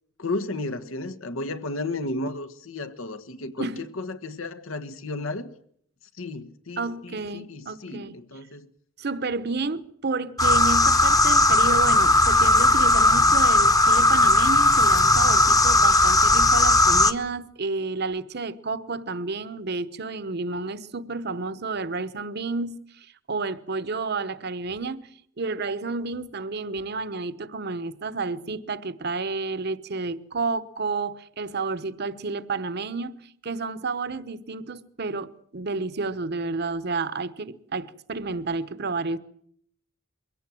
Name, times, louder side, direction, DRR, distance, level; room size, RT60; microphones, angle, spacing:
voice 1, 0.2-3.7 4.0-5.5 6.2-8.7, left 2 dB, 90° left, 1.5 m, -33 dB
voice 2, 6.8-8.1 9.0-25.1 25.4-33.2 33.4-39.2, right 3 dB, 55° right, 1.0 m, -30 dB
sound 1, 10.4-17.1, left 2 dB, 20° left, 1.0 m, -18 dB
23.0 x 17.0 x 7.7 m
head